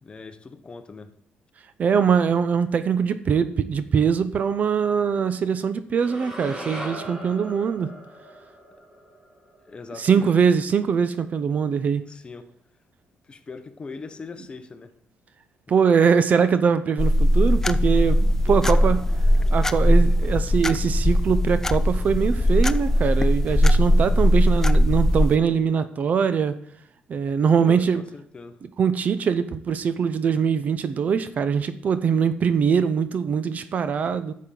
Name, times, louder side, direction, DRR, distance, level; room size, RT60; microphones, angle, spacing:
voice 1, 0.0-1.1 9.6-10.4 12.0-12.5 13.2-14.9 18.5-19.0 27.6-28.6, left 4 dB, 30° left, 9 dB, 0.9 m, -40 dB
voice 2, 1.8-7.9 10.0-12.0 15.7-19.0 19.5-26.6 27.1-28.0 28.8-34.3, right 6 dB, 45° right, 13 dB, 0.6 m, -22 dB
sound 1, 6.0-10.2, equal, 20° right, 1.9 m, -38 dB
sound 2, 17.0-25.4, equal, 10° left, 0.3 m, -19 dB
10.5 x 7.4 x 3.9 m, 0.67 s
cardioid pair, 115°, 4 cm